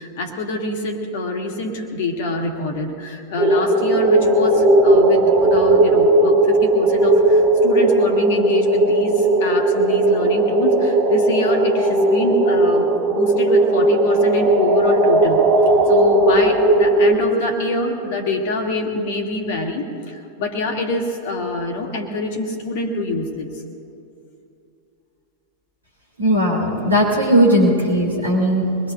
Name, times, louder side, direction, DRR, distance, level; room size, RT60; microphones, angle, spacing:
voice 1, 0.0-15.4 15.9-23.5, left 2 dB, 50° left, 2 dB, 2.0 m, -25 dB
sound 1, 3.4-17.1, right 2 dB, 30° right, 1.6 m, -16 dB
voice 2, 26.2-28.9, equal, 80° right, -3 dB, 4.3 m, -17 dB
24.5 x 21.0 x 2.7 m, 2.6 s
figure-of-eight pair, 90°, 0 cm